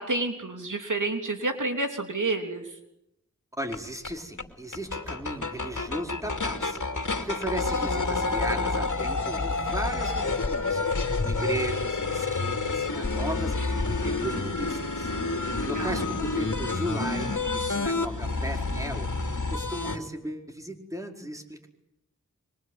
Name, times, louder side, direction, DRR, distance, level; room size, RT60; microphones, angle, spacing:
voice 1, 0.0-2.7 15.7-16.0, right 2 dB, 75° right, 5 dB, 3.2 m, -29 dB
voice 2, 3.6-10.8 11.1-15.1 15.4-21.7, right 1 dB, 10° right, 3 dB, 4.7 m, -36 dB
sound 1, 3.7-3.8 4.0-4.1 4.4-4.5 4.7-20.0, left 3 dB, 70° left, 2.8 m, -29 dB
25.0 x 24.0 x 9.4 m, 0.85 s
wide cardioid pair, 45°, 31 cm